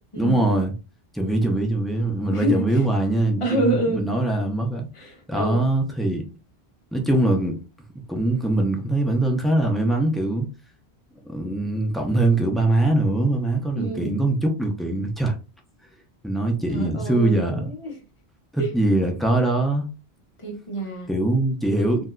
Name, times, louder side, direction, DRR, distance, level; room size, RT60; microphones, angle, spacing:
voice 1, 0.2-0.7 1.1-4.9 5.3-6.2 6.9-7.6 8.1-10.5 11.3-15.3 16.2-17.7 18.5-19.9 21.1-22.1, right 2 dB, ahead, 0.5 m, -22 dB
voice 2, 2.3-2.9 3.4-4.0 4.9-5.6 13.7-14.1 16.7-18.0 18.6-18.7 20.4-21.1, right 2 dB, 30° left, 0.9 m, -27 dB
3.5 x 2.7 x 2.3 m
omnidirectional pair, 1.0 m